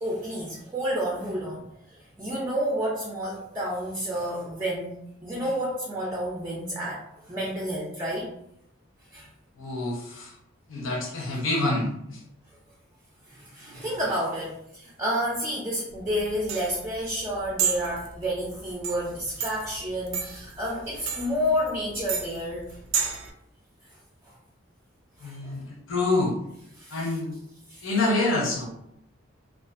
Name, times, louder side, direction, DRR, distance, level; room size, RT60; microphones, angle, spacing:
voice 1, 0.0-1.7 2.2-8.3 9.1-9.3 13.3-22.8 25.2-25.6 26.8-27.2 27.7-27.8, equal, 15° right, -4 dB, 0.4 m, -30 dB
voice 2, 9.6-10.3 10.7-12.2 25.2-26.4 26.9-27.4 27.8-28.7, left 2 dB, 85° left, -1 dB, 0.8 m, -27 dB
sound 1, 15.9-23.3, right 7 dB, 80° right, 0.4 m, -32 dB
2.4 x 2.3 x 2.4 m, 0.76 s
head